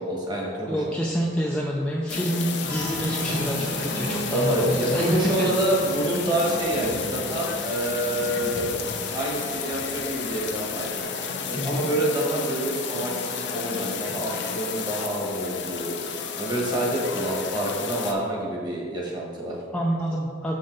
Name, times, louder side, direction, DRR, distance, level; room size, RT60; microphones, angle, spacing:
voice 1, 0.0-0.8 3.3-3.5 4.3-8.8 9.1-10.9 11.4-15.9 16.4-19.6, right 1 dB, 25° right, -3 dB, 1.3 m, -27 dB
voice 2, 0.7-5.5 11.6-11.9 19.7-20.6, equal, 5° left, -3 dB, 0.4 m, -27 dB
sound 1, 2.1-18.1, left 6 dB, 75° left, 0.6 m, -32 dB
Applause, 2.6-11.0, right 2 dB, 75° right, 1.4 m, -36 dB
6.6 x 5.4 x 3.9 m, 2.1 s
head